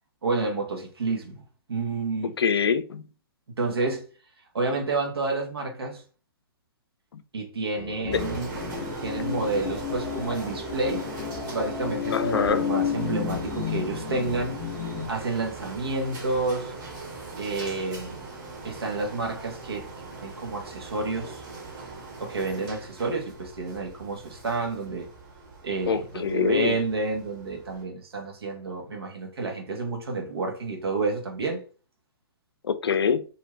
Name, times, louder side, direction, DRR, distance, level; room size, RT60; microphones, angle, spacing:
voice 1, 0.2-1.4 1.7-2.4 3.6-4.0 4.5-6.0 7.3-8.6 9.0-11.0 11.5-14.6 15.1-16.7 17.4-18.3 18.6-19.9 20.2-21.4 22.2-25.1 25.6-31.6, right 3 dB, 80° right, 1.2 m, -29 dB
voice 2, 2.4-3.0 7.1-7.2 8.1-8.2 12.1-12.6 25.9-26.8 32.6-33.3, left 6 dB, 80° left, 0.4 m, -24 dB
sound 1, 7.7-15.1, left 8 dB, 15° left, 0.6 m, -32 dB
sound 2, 8.1-27.8, right 3 dB, 50° right, 1.6 m, -40 dB
2.7 x 2.4 x 3.1 m
hypercardioid pair, 135°, 13 cm